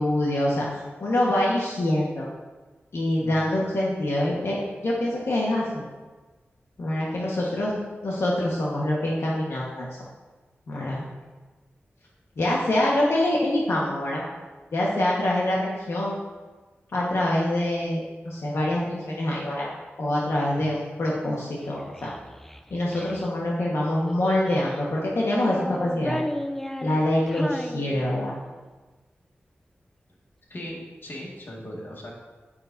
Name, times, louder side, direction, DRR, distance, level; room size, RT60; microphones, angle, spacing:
voice 1, 0.0-2.3 2.9-5.8 6.8-9.9 10.7-11.0 12.4-14.3 14.7-16.2 16.9-19.7 20.0-22.1 22.7-26.2 26.8-28.4, left 1 dB, 80° left, -5 dB, 1.4 m, -25 dB
voice 2, 3.2-3.5 7.4-7.5 30.5-32.1, equal, 55° left, -3 dB, 1.9 m, -39 dB
Child speech kid speaking, 21.6-23.3 24.0-24.9 25.4-28.5, left 1 dB, 5° left, 0.5 m, -34 dB
9.4 x 8.8 x 2.7 m, 1.3 s
wide cardioid pair, 95°, 4 cm